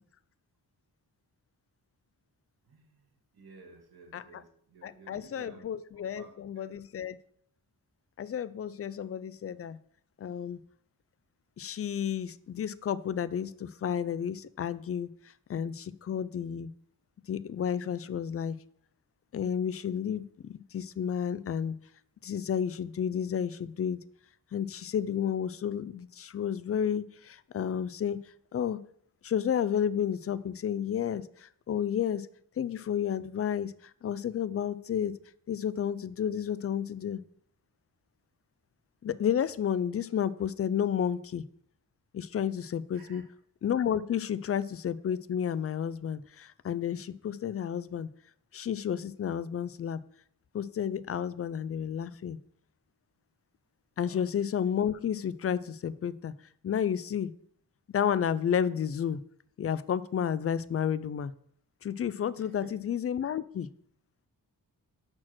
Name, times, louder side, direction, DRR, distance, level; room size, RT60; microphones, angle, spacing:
voice 1, 2.6-5.6 5.9-6.8 42.9-43.3 54.0-54.3 62.4-62.7, right 3 dB, 80° right, 1 dB, 1.9 m, -54 dB
voice 2, 4.8-7.2 8.2-9.8 10.2-10.6 11.6-15.1 15.5-16.7 17.3-18.6 19.3-21.7 22.2-24.0 24.5-28.2 28.5-28.8 29.2-32.3 32.6-35.1 35.5-37.2 39.0-41.4 42.1-43.2 43.6-48.1 48.5-50.0 50.5-52.4 54.0-56.3 56.6-57.3 57.9-59.2 59.6-61.3 61.8-63.7, left 8 dB, 40° left, 17 dB, 0.4 m, -31 dB
5.9 x 4.4 x 6.1 m, 0.66 s
wide cardioid pair, 90°, 37 cm